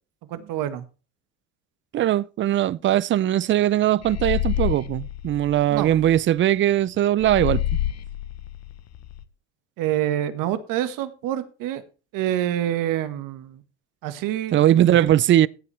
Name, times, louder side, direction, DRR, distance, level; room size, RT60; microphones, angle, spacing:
voice 1, 0.3-0.9 5.7-5.9 9.8-11.8 12.1-13.6 14.0-14.6 14.9-15.1, right 12 dB, 60° right, 1.7 m, -26 dB
voice 2, 1.9-7.6 14.5-15.5, right 12 dB, 35° right, 0.5 m, -20 dB
sound 1, 4.0-6.2 7.2-9.2, left 12 dB, 45° left, 1.0 m, -28 dB
16.0 x 8.4 x 3.4 m
hypercardioid pair, 80°, 37 cm